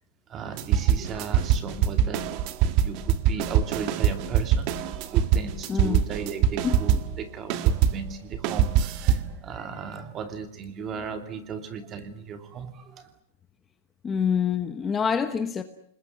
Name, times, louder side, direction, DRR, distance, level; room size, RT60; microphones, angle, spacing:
voice 1, 0.3-2.3 2.8-13.1, right 6 dB, 20° right, 2.6 m, -36 dB
sound 1, 0.6-7.2 7.5-9.3, right 9 dB, 35° right, 1.6 m, -23 dB
voice 2, 5.7-6.0 6.6-6.8 14.0-15.6, left 6 dB, 15° left, 1.1 m, -26 dB
28.5 x 20.5 x 9.7 m
supercardioid pair, 170°, 0 cm